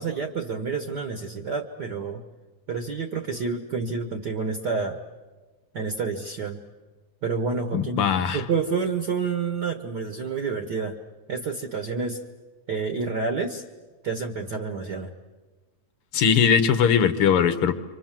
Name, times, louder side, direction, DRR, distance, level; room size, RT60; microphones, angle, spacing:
voice 1, 0.0-2.2 2.7-5.0 5.7-6.6 7.2-11.0 11.3-12.2 12.7-13.6 14.0-15.1, right 4 dB, 45° right, 6 dB, 1.5 m, -29 dB
voice 2, 7.7-8.4 16.1-17.7, left 7 dB, 60° left, 11 dB, 1.6 m, -20 dB
28.5 x 25.5 x 7.5 m, 1.3 s
omnidirectional pair, 3.3 m